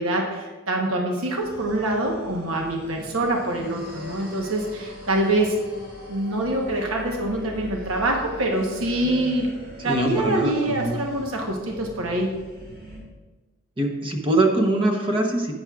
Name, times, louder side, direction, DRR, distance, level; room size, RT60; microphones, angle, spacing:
voice 1, 0.0-5.6 6.1-9.5 9.8-12.4, right 1 dB, 75° right, 1 dB, 1.0 m, -25 dB
sound 1, 1.4-13.0, left 1 dB, 40° right, 2.0 m, -41 dB
voice 2, 9.8-11.0 13.8-15.5, right 2 dB, 25° right, 2 dB, 0.8 m, -23 dB
11.5 x 8.8 x 2.4 m, 1.2 s
head